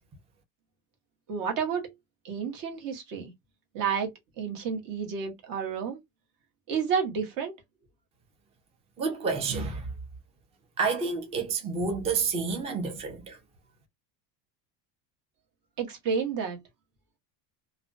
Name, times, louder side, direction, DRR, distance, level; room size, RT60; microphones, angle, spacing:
voice 1, 1.3-1.9 2.2-3.3 3.7-4.1 4.4-6.0 6.7-7.5 15.8-16.6, right 6 dB, 50° right, 1.0 m, -30 dB
voice 2, 9.0-9.9 10.8-13.4, right 4 dB, 15° right, 0.4 m, -29 dB
2.4 x 2.1 x 2.4 m
cardioid pair, 160°, 43 cm